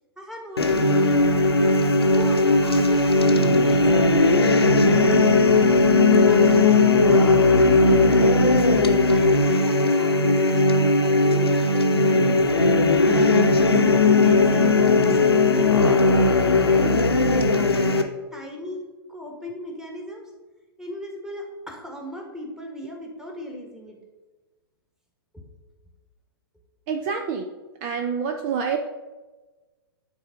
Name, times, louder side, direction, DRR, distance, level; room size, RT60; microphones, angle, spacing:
voice 1, 0.2-1.6 2.1-5.6 6.2-12.3 13.0-13.7 14.1-15.2 15.5-16.8 17.3-18.8 19.1-20.2 20.8-24.0 25.3-25.4, left 1 dB, 5° right, 1 dB, 1.5 m, -37 dB
sound 1, 0.6-18.0, left 2 dB, 80° left, 0.9 m, -18 dB
voice 2, 5.1-5.6 7.0-7.1 26.9-27.5 27.8-28.8, right 6 dB, 35° right, 5 dB, 0.6 m, -28 dB
9.9 x 4.2 x 5.0 m, 1.2 s
figure-of-eight pair, 110°, 13 cm